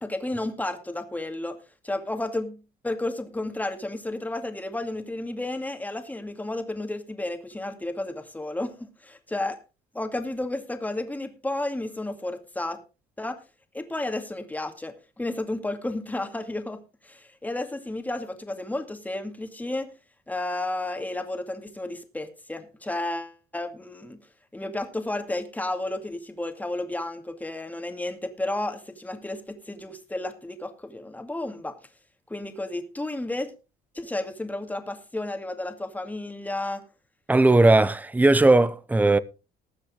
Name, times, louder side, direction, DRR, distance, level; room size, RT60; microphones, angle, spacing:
voice 1, 0.0-1.6 1.8-2.6 2.8-9.6 9.9-12.8 13.2-13.4 13.7-16.8 17.0-19.9 20.3-24.2 24.5-31.8 32.3-33.5 33.9-36.8, left 2 dB, 10° left, 2.2 m, -32 dB
voice 2, 37.3-39.2, right 2 dB, 10° right, 0.8 m, -18 dB
20.0 x 7.5 x 3.8 m
cardioid pair, 110°, 17 cm